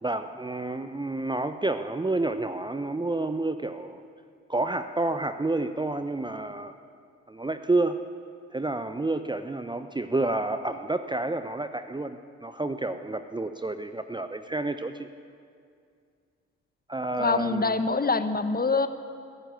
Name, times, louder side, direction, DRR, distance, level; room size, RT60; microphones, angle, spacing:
voice 1, 0.0-4.0 4.5-6.8 7.3-8.0 8.5-15.1 16.9-17.8, right 2 dB, 15° right, 9 dB, 0.9 m, -29 dB
voice 2, 17.2-18.9, left 4 dB, 25° left, 10 dB, 1.4 m, -25 dB
21.5 x 15.0 x 8.1 m, 2.3 s
figure-of-eight pair, 40°, 35 cm